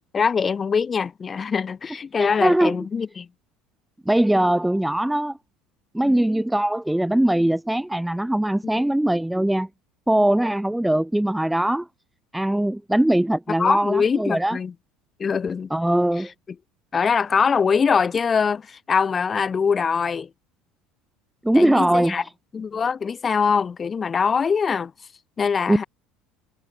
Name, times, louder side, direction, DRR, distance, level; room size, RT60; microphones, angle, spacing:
voice 1, 0.1-3.3 6.0-6.2 13.6-14.7 15.2-15.7 16.9-20.3 21.5-22.2 22.5-24.9 25.4-25.8, left 6 dB, 30° left, 2.6 m, -23 dB
voice 2, 2.2-2.8 4.1-5.4 5.9-9.7 10.1-11.9 12.3-14.6 15.7-16.3 21.4-22.2 25.7-25.8, right 1 dB, 5° right, 1.1 m, -21 dB
figure-of-eight pair, 65°, 0 cm